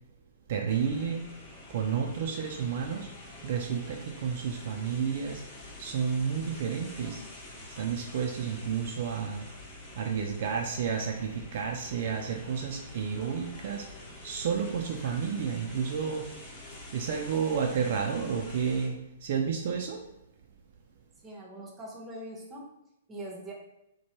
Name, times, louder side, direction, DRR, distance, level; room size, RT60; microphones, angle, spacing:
voice 1, 0.5-1.3 1.7-3.1 3.4-5.4 5.8-7.2 7.7-9.5 10.0-13.9 14.2-16.3 16.9-20.0, right 6 dB, 60° right, 2 dB, 0.3 m, -31 dB
sound 1, 0.7-18.9, left 2 dB, 30° left, 0.9 m, -47 dB
voice 2, 21.2-22.6 23.1-23.5, right 1 dB, 15° right, -2 dB, 0.7 m, -42 dB
3.0 x 2.1 x 2.8 m, 0.84 s
hypercardioid pair, 125°, 0 cm